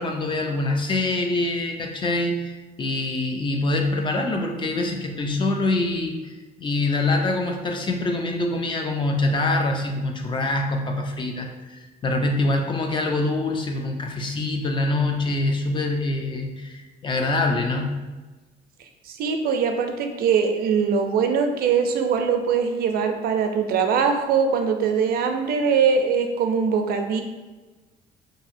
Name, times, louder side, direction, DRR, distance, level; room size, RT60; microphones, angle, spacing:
voice 1, 0.0-2.5 2.8-18.0, left 2 dB, 30° left, 3 dB, 0.4 m, -25 dB
voice 2, 19.2-27.2, right 6 dB, 65° right, 5 dB, 0.4 m, -22 dB
2.7 x 2.7 x 2.5 m, 1.2 s
cardioid pair, 110°, 17 cm